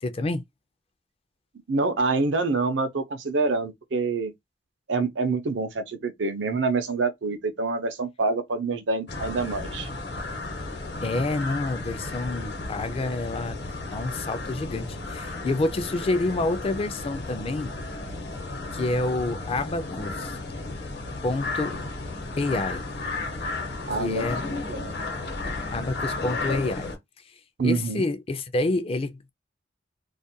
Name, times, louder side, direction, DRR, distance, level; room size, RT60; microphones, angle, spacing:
voice 1, 0.0-0.4 11.0-13.6 13.9-17.8 18.7-20.4 21.2-21.8 22.4-22.9 24.0-24.5 25.7-26.9 27.6-29.3, left 2 dB, 30° left, 0.4 m, -28 dB
voice 2, 1.7-4.3 4.9-9.9 23.9-24.2 24.7-24.9 27.6-28.1, right 3 dB, 80° right, 0.5 m, -26 dB
sound 1, 9.1-27.0, left 3 dB, 65° left, 0.9 m, -34 dB
2.4 x 2.1 x 2.7 m
head